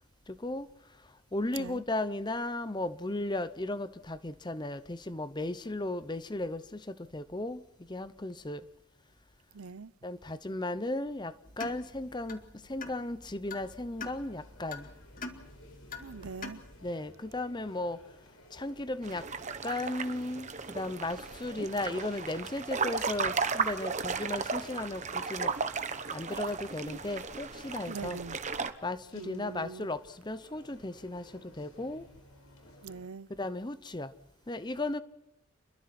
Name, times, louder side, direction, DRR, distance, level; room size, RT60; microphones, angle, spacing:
voice 1, 0.3-0.7 1.3-7.6 7.9-8.6 10.0-12.4 12.7-14.9 16.8-18.0 18.5-19.3 19.6-25.5 26.1-28.2 28.8-32.1 33.4-34.1 34.5-35.0, left 2 dB, 20° left, 0.8 m, -35 dB
voice 2, 9.5-9.9 16.0-16.6 27.9-28.4 29.1-29.9 32.8-33.3, right 5 dB, 90° right, 0.8 m, -42 dB
sound 1, 11.5-16.9, left 4 dB, 40° left, 2.1 m, -45 dB
sound 2, 13.4-33.0, left 1 dB, 75° left, 4.6 m, -57 dB
sound 3, 19.0-28.7, right 5 dB, 35° right, 1.1 m, -35 dB
29.5 x 22.5 x 4.4 m
head